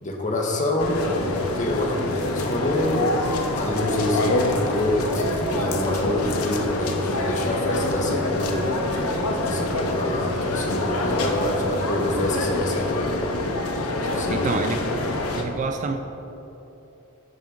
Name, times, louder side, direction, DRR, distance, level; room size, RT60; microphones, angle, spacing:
voice 1, 0.0-8.7 9.4-13.1 14.0-14.6, left 1 dB, 35° left, 0 dB, 0.9 m, -26 dB
sound 1, 0.8-15.4, left 2 dB, 70° left, 0.7 m, -26 dB
voice 2, 14.3-14.8 15.4-16.0, right 4 dB, 35° right, 7 dB, 0.3 m, -27 dB
9.4 x 3.7 x 5.1 m, 3.0 s
head